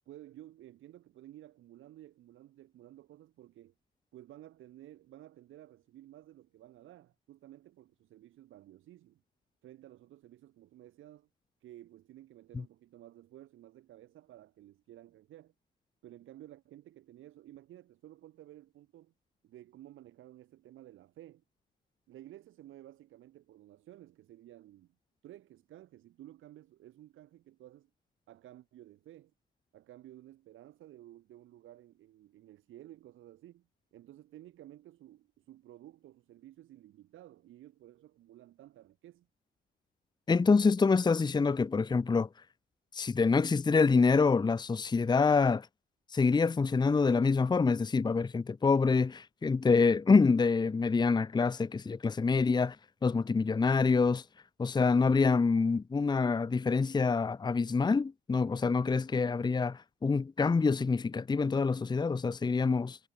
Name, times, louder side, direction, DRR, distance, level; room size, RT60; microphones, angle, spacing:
voice 1, 0.1-3.7 4.1-9.2 9.6-11.3 11.6-15.5 16.0-19.1 19.4-21.4 22.1-24.9 25.2-27.9 28.3-29.3 29.7-39.3, right 13 dB, 80° right, 5.4 m, -54 dB
voice 2, 40.3-42.3 42.9-45.7 46.1-52.8 53.0-54.2 54.6-63.0, left 4 dB, 20° left, 0.7 m, -26 dB
cardioid pair, 90°, 20 cm